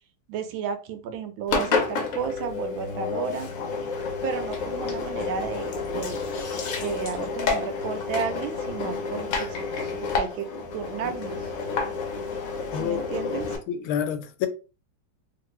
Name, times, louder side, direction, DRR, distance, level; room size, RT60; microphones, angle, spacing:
voice 1, 0.3-3.5 4.2-6.2 6.7-9.5 9.9-10.5 10.7-11.5 12.8-13.5, right 7 dB, 80° right, 1.3 m, -32 dB
Engine, 1.5-13.6, left 4 dB, 65° left, 0.8 m, -30 dB
voice 2, 13.7-14.5, left 9 dB, 85° left, 1.4 m, -28 dB
3.1 x 2.5 x 3.1 m
omnidirectional pair, 2.2 m